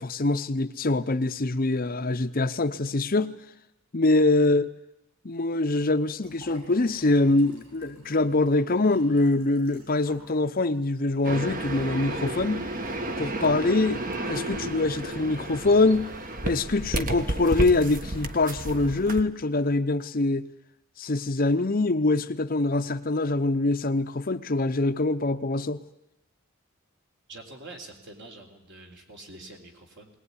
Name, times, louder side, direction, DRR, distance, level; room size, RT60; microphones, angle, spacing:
voice 1, 0.0-3.4 3.9-4.7 5.2-12.7 13.2-16.1 16.4-20.5 21.0-25.8, left 2 dB, 40° left, 0.8 m, -24 dB
Liquid, 6.2-10.4 10.8-10.9, right 1 dB, 80° right, 7.5 m, -53 dB
sound 1, 11.2-19.2, right 1 dB, 40° right, 1.4 m, -32 dB
voice 2, 27.3-30.1, right 2 dB, 55° right, 3.9 m, -45 dB
21.0 x 19.0 x 9.8 m
head